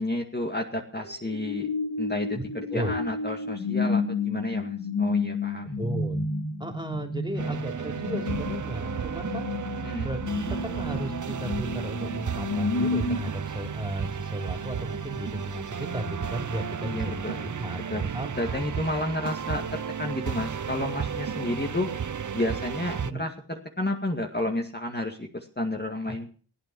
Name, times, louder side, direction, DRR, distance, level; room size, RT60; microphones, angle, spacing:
voice 1, 0.0-1.7 2.0-5.7 7.3-7.6 9.8-10.1 16.8-17.5 17.9-18.1 18.4-21.9 22.3-26.3, left 1 dB, 25° left, 2 dB, 2.1 m, -31 dB
sound 1, 0.9-13.2, left 3 dB, 60° left, 3.5 m, -31 dB
voice 2, 5.8-6.3 6.6-9.5 10.0-10.2 10.5-18.6 23.0-23.3 26.1-26.2, right 1 dB, 10° right, 4 dB, 3.3 m, -35 dB
sound 2, 7.4-23.1, right 7 dB, 50° right, 0.7 m, -33 dB
16.5 x 9.0 x 6.2 m, 0.40 s
cardioid pair, 45°, 40 cm